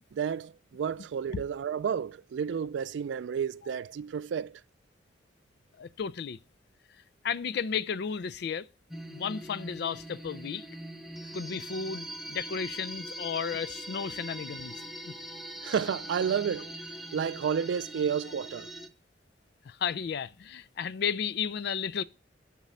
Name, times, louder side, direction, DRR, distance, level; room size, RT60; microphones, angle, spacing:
voice 1, 0.1-4.6 15.6-16.7 17.1-18.7, right 7 dB, 75° right, 0.3 m, -31 dB
voice 2, 5.8-6.4 7.2-8.7 9.1-10.7 11.3-15.1 19.7-22.0, left 6 dB, 60° left, 0.4 m, -33 dB
sound 1, 8.9-18.9, right 1 dB, ahead, 0.6 m, -42 dB
7.3 x 6.0 x 5.5 m
head